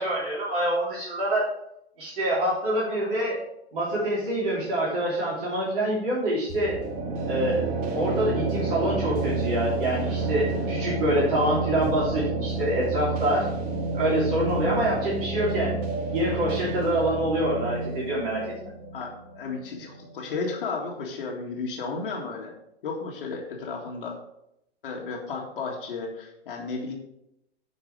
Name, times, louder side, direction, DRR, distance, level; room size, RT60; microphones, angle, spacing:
voice 1, 0.0-1.5 2.0-3.4 3.7-6.8 7.3-13.6 13.9-15.8 16.1-18.5, right 1 dB, 55° right, -7 dB, 3.4 m, -26 dB
sound 1, 6.5-20.2, right 3 dB, 25° right, 1.7 m, -30 dB
voice 2, 18.9-22.5 22.8-24.2 24.8-26.9, left 4 dB, 55° left, -1 dB, 1.9 m, -33 dB
10.0 x 5.3 x 5.2 m, 0.80 s
figure-of-eight pair, 110°, 33 cm